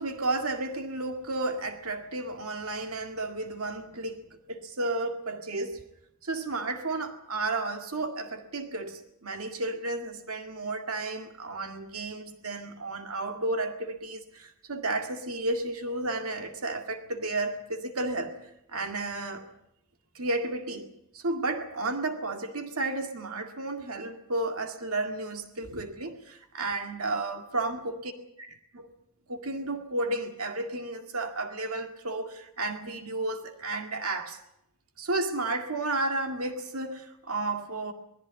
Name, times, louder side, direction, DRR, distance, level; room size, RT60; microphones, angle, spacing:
voice 1, 0.0-4.2 4.5-5.8 6.2-18.3 18.7-19.4 20.1-20.9 21.1-27.9 28.7-28.9 29.3-34.4 35.0-37.9, right 2 dB, 80° right, 2.1 m, -32 dB
20.5 x 15.0 x 9.2 m
head